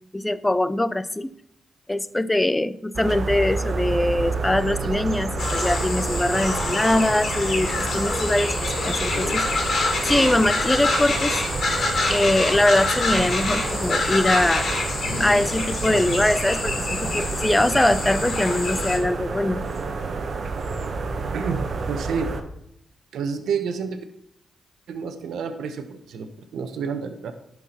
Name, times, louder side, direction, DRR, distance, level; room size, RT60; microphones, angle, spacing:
voice 1, 0.1-1.3 1.9-9.5 10.0-11.4 12.1-14.8 15.2-19.6, left 1 dB, 15° left, 16 dB, 0.5 m, -22 dB
sound 1, 2.9-22.4, right 4 dB, 55° right, 1.2 m, -29 dB
sound 2, 5.4-19.0, left 3 dB, 60° left, 2.4 m, -26 dB
voice 2, 21.3-22.3 23.1-24.0 24.9-27.3, right 6 dB, 85° right, 8 dB, 1.0 m, -29 dB
11.0 x 4.8 x 5.8 m, 0.76 s
cardioid pair, 70°, 0 cm